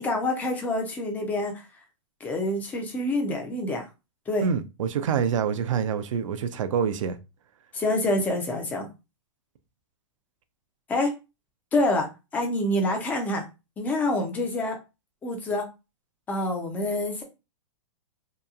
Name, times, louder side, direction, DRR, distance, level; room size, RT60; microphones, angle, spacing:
voice 1, 0.0-1.6 2.2-3.9 4.3-4.4 7.7-8.9 10.9-11.1 11.7-13.4 13.8-14.8 15.2-15.7 16.3-17.2, left 1 dB, 10° left, 0.4 m, -26 dB
voice 2, 4.4-7.2, right 7 dB, 80° right, 0.5 m, -26 dB
2.8 x 2.2 x 2.4 m
hypercardioid pair, 155°, 16 cm